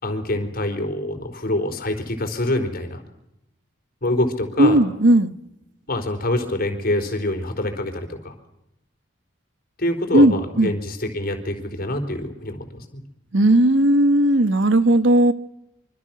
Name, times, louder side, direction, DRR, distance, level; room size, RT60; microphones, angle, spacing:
voice 1, 0.0-3.0 4.0-4.8 5.9-8.3 9.8-13.0, left 1 dB, 50° left, 4.3 m, -25 dB
voice 2, 4.6-5.3 10.1-10.7 13.3-15.3, right 1 dB, 70° right, 1.3 m, -16 dB
26.5 x 25.0 x 6.0 m
head